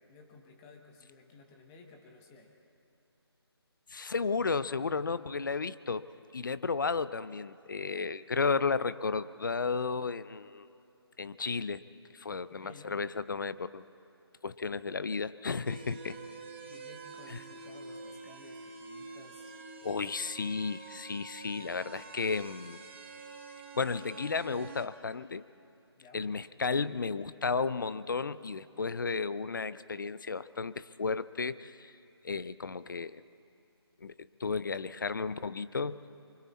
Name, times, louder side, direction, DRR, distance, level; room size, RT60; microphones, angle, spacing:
voice 1, 0.1-2.6 12.4-12.9 16.1-19.6 26.0-26.3, left 3 dB, 10° left, 2 dB, 0.9 m, -55 dB
voice 2, 3.9-10.7 11.2-11.8 12.1-13.8 14.4-16.2 17.3-17.4 19.8-22.8 23.7-25.4 26.1-31.9 32.2-33.2 34.0-34.1 34.4-36.0, left 4 dB, 50° left, 16 dB, 0.6 m, -33 dB
sound 1, 15.6-24.9, right 3 dB, 25° right, 1.5 m, -47 dB
27.5 x 24.5 x 4.2 m, 2.7 s
figure-of-eight pair, 170°, 14 cm